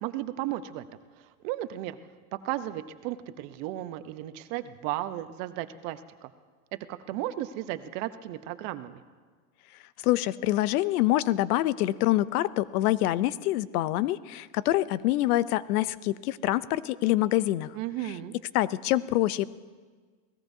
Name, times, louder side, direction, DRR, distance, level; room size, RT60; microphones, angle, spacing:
voice 1, 0.0-0.8 1.4-2.0 2.3-6.3 6.9-9.0 17.7-18.3, right 14 dB, 60° right, 11 dB, 0.9 m, -34 dB
voice 2, 10.0-17.7 18.5-19.5, left 15 dB, 80° left, 17 dB, 0.7 m, -25 dB
28.0 x 17.5 x 2.7 m, 1.5 s
supercardioid pair, 130°, 44 cm